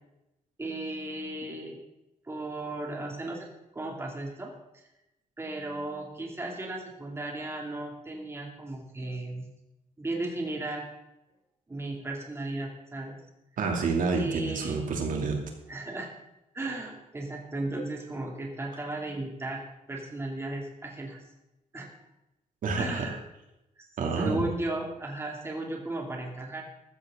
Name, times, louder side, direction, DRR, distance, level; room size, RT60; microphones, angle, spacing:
voice 1, 0.6-1.8 2.2-3.5 3.7-4.8 5.4-9.5 10.0-10.8 11.7-13.2 14.2-14.8 15.7-16.1 16.5-19.6 19.9-21.2 21.7-21.9 22.7-23.2 24.2-26.6, right 2 dB, 20° right, 0 dB, 2.6 m, -35 dB
voice 2, 13.6-15.4 22.6-23.0 24.0-24.4, right 4 dB, 70° right, 2 dB, 2.7 m, -28 dB
15.0 x 14.0 x 3.8 m, 0.91 s
wide cardioid pair, 140°, 14 cm